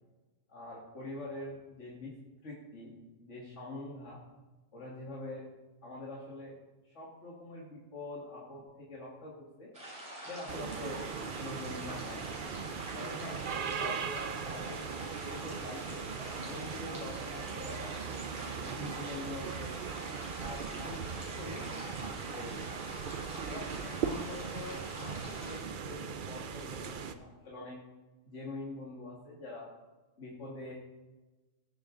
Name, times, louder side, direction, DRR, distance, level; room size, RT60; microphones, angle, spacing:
voice 1, 0.5-2.9 3.2-4.2 4.7-5.5 5.8-6.5 6.8-9.7 10.2-12.2 12.9-14.8 15.2-16.1 16.4-18.2 18.7-19.8 20.4-21.6 22.2-22.6 23.5-27.8 28.2-29.7 30.2-30.7, left 2 dB, 70° left, -5 dB, 2.3 m, -45 dB
sound 1, 9.7-25.6, right 1 dB, 30° right, 3.5 m, -46 dB
sound 2, 10.5-27.1, right 6 dB, 50° right, 0.7 m, -39 dB
18.0 x 7.1 x 3.8 m, 1.2 s
omnidirectional pair, 1.3 m